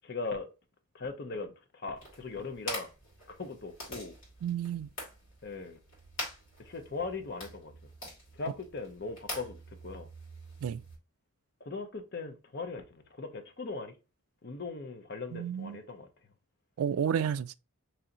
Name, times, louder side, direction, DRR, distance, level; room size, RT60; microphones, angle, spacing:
voice 1, 0.0-0.5 0.9-2.9 3.3-4.1 5.4-5.8 6.6-7.7 8.3-10.1 11.6-14.0 14.4-16.1, left 3 dB, 50° left, 0.6 m, -39 dB
sound 1, 2.0-11.0, left 1 dB, 65° left, 2.1 m, -45 dB
voice 2, 4.4-4.9 10.6-10.8 15.3-15.8 16.8-17.5, right 8 dB, 80° right, 0.3 m, -31 dB
3.1 x 2.8 x 3.8 m
head